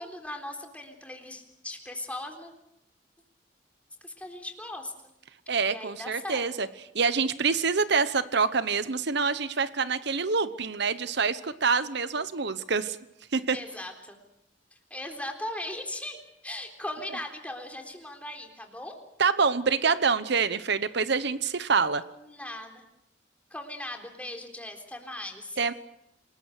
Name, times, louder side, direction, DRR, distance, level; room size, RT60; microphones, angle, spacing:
voice 1, 0.0-2.5 4.0-4.9 5.6-6.5 13.5-14.2 14.9-19.0 22.1-22.8 23.5-25.6, left 1 dB, 10° left, 3 dB, 3.7 m, -38 dB
voice 2, 5.5-6.7 6.9-13.0 13.3-13.6 19.2-22.0 25.6-25.7, right 5 dB, 65° right, 13 dB, 1.0 m, -26 dB
28.0 x 20.5 x 6.6 m, 0.82 s
head